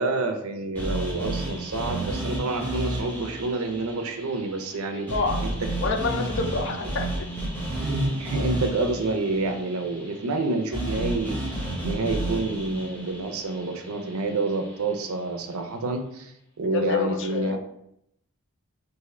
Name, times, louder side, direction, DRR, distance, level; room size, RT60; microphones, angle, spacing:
voice 1, 0.0-5.1 5.4-5.7 6.1-6.2 7.8-11.4 11.8-17.6, right 2 dB, 75° right, 5 dB, 0.5 m, -28 dB
sound 1, 0.8-14.9, right 1 dB, 10° left, 0.8 m, -32 dB
voice 2, 5.8-7.1 16.7-17.6, left 4 dB, 55° left, 5 dB, 0.4 m, -27 dB
3.6 x 2.6 x 3.2 m, 0.76 s
head